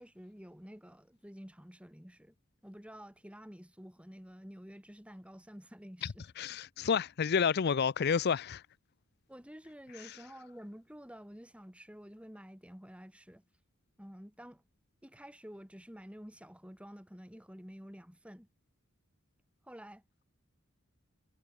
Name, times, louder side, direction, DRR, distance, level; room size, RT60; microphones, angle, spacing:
voice 1, 0.0-2.3 2.6-6.3 9.3-13.4 14.0-14.6 15.0-18.5 19.6-20.0, equal, 5° right, 3.4 m, -50 dB
voice 2, 6.0-8.6, left 6 dB, 50° left, 0.5 m, -30 dB
head